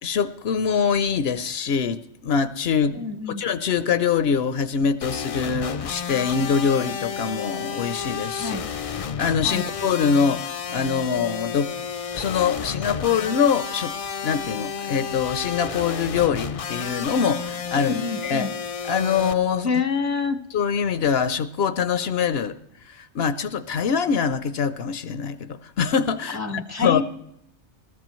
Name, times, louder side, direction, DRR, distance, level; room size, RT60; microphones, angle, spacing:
voice 1, 0.0-3.0 3.4-8.6 9.2-11.7 12.1-13.9 14.2-17.9 18.2-18.5 18.8-19.7 20.5-22.6 22.9-27.0, left 6 dB, 65° left, 13 dB, 0.8 m, -24 dB
voice 2, 2.9-3.4 8.4-8.7 9.4-9.7 17.7-18.5 19.6-20.4 26.3-27.0, left 5 dB, 15° right, 7 dB, 0.7 m, -27 dB
sound 1, 5.0-19.3, left 6 dB, 50° left, 0.4 m, -31 dB
20.0 x 14.0 x 3.1 m, 0.77 s
omnidirectional pair, 1.2 m